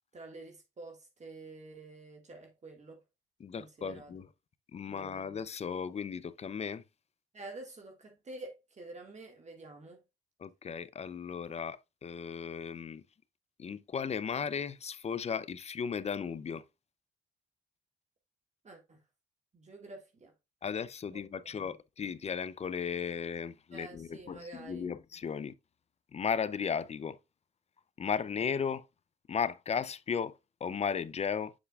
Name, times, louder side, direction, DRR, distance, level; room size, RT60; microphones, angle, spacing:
voice 1, 0.1-3.0 3.6-4.1 4.9-5.2 7.3-10.0 18.6-19.0 19.5-20.3 21.1-21.2 21.5-21.7 23.7-24.9, right 2 dB, 35° right, 1.8 m, -48 dB
voice 2, 3.4-4.3 4.7-6.8 10.4-13.0 13.6-16.6 20.6-25.5 26.1-27.2 28.0-28.8 29.3-31.5, left 6 dB, 35° left, 0.5 m, -35 dB
7.2 x 6.7 x 2.3 m
cardioid pair, 90°, 20 cm